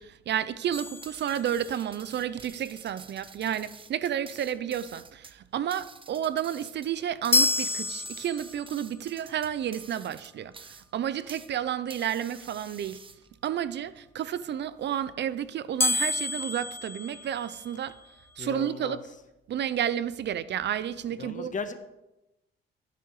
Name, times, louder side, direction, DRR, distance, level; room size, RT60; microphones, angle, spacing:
voice 1, 0.0-13.0 13.4-18.0 18.4-19.0 19.5-21.5, right 10 dB, 60° right, 0.6 m, -31 dB
sound 1, 0.7-2.0 7.3-8.8 15.8-17.9, left 3 dB, 10° left, 0.3 m, -29 dB
sound 2, 0.7-11.6 11.9-13.5, right 4 dB, 25° right, 0.8 m, -49 dB
voice 2, 18.4-19.0 21.2-21.7, left 5 dB, 40° left, 1.5 m, -36 dB
14.5 x 9.9 x 4.9 m
cardioid pair, 90°, 20 cm